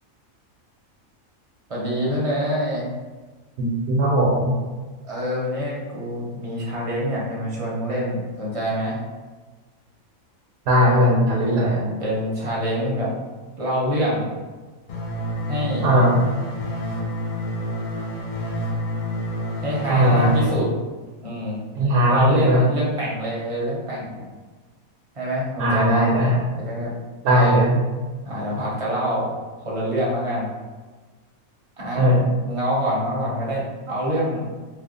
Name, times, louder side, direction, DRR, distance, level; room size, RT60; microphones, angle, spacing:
voice 1, 1.7-2.9 5.0-9.0 12.0-13.1 13.6-14.3 15.5-16.1 19.6-20.7 21.2-21.6 22.1-24.2 25.1-26.0 26.6-26.9 27.3-27.6 28.2-29.3 29.6-30.5 31.8-34.5, equal, 30° right, -5 dB, 0.6 m, -26 dB
voice 2, 3.6-4.5 10.7-11.8 15.8-16.1 19.9-20.3 21.7-22.6 25.6-26.4 27.2-27.8 31.9-32.2, equal, 70° right, -4 dB, 0.9 m, -18 dB
sound 1, 14.9-20.5, equal, 50° left, 0.4 m, -28 dB
3.3 x 2.0 x 3.8 m, 1.3 s
omnidirectional pair, 1.5 m